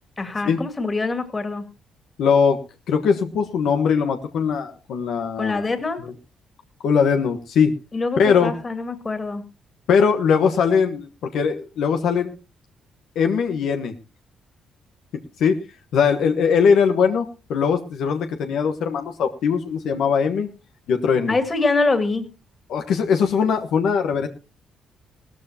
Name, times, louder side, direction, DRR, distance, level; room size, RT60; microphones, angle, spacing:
voice 1, 0.2-1.6 5.4-6.0 7.9-9.4 21.3-22.3, left 3 dB, 30° left, 8 dB, 2.6 m, -24 dB
voice 2, 2.2-2.6 2.9-5.7 6.8-7.7 8.2-8.5 9.9-12.3 13.1-13.9 15.4-15.6 15.9-20.5 20.9-21.3 22.7-24.3, left 6 dB, 75° left, 5 dB, 1.3 m, -20 dB
17.0 x 14.0 x 2.9 m, 0.30 s
cardioid pair, 90°, 0 cm